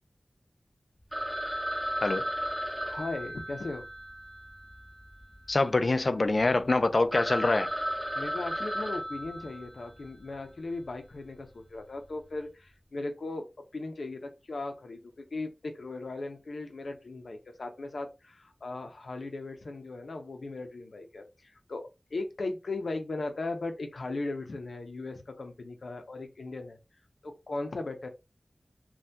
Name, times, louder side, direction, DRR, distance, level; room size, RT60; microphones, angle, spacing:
Telephone, 1.1-5.5 5.7-5.8 6.4-6.5 6.8-6.9 7.1-10.1, equal, 5° right, 1.4 m, -35 dB
voice 1, 2.8-3.9 8.2-13.5 13.7-26.8 27.2-28.1, left 2 dB, 90° left, 0.6 m, -38 dB
voice 2, 5.5-7.7, left 2 dB, 55° left, 0.3 m, -25 dB
3.3 x 2.3 x 2.7 m
wide cardioid pair, 60°, 0 cm